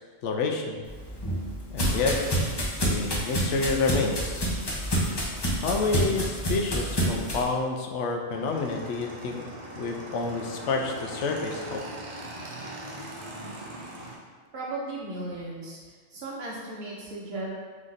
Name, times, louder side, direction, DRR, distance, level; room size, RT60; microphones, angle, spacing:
voice 1, 0.2-0.8 1.7-2.2 2.8-4.5 5.6-9.4 9.8-11.8, left 4 dB, 80° left, 2 dB, 0.9 m, -29 dB
sound 1, 0.8-7.4, equal, 25° left, 0.7 m, -28 dB
Motorcycle / Engine, 8.3-14.1, right 1 dB, 40° right, 0.7 m, -40 dB
voice 2, 14.5-15.8 16.1-17.5, right 2 dB, 60° right, -4 dB, 1.2 m, -36 dB
3.8 x 3.2 x 3.9 m, 1.5 s
omnidirectional pair, 1.2 m